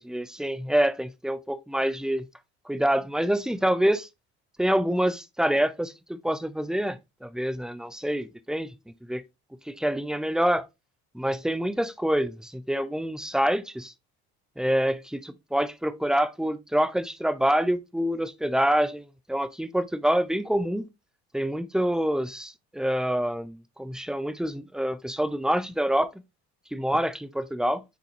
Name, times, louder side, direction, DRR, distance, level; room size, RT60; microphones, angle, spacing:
voice 1, 0.0-2.3 2.7-4.1 4.6-8.7 9.0-9.2 9.8-10.7 11.1-13.9 14.6-20.9 21.3-26.1 26.7-27.8, equal, ahead, 0.6 m, -26 dB
9.2 x 3.8 x 2.8 m
supercardioid pair, 90°, 31 cm